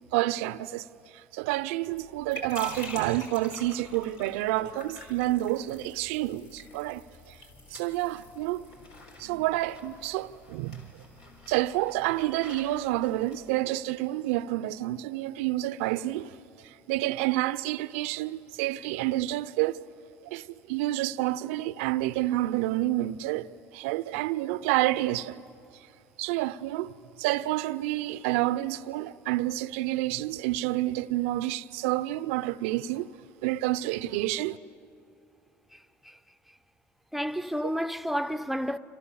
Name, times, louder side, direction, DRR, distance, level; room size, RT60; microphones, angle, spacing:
voice 1, 0.1-0.8 1.1-7.4 7.7-8.7 9.2-11.0 11.5-16.4 16.6-19.8 20.2-23.5 23.7-25.4 26.2-33.2 33.4-34.6, right 16 dB, 75° right, 0.6 m, -29 dB
sound 1, 1.9-13.5, left 2 dB, 70° left, 5.1 m, -47 dB
voice 2, 37.1-38.8, equal, ahead, 0.8 m, -30 dB
29.5 x 26.5 x 7.0 m
hypercardioid pair, 65°, 7 cm